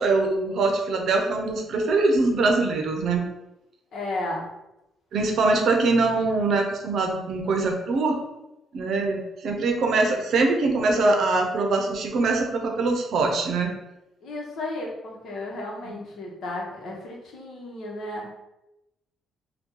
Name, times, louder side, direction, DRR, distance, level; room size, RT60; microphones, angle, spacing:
voice 1, 0.0-3.3 5.1-8.2 8.7-13.7 15.9-16.0, right 3 dB, 65° right, 3 dB, 0.6 m, -23 dB
voice 2, 3.9-4.5 14.2-18.4, left 2 dB, 65° left, -1 dB, 0.9 m, -33 dB
2.8 x 2.3 x 3.6 m, 0.92 s
cardioid pair, 90°, 0 cm